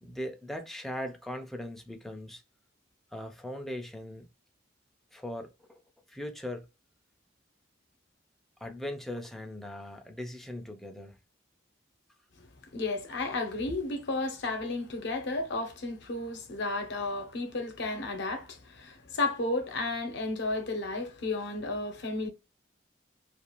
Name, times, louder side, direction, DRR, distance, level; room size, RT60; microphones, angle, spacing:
voice 1, 0.0-2.4 3.1-4.3 5.1-5.8 6.1-6.7 8.6-11.2, left 1 dB, ahead, 0.4 m, -39 dB
voice 2, 12.7-22.3, left 2 dB, 65° left, 0.7 m, -33 dB
2.4 x 2.3 x 2.9 m
head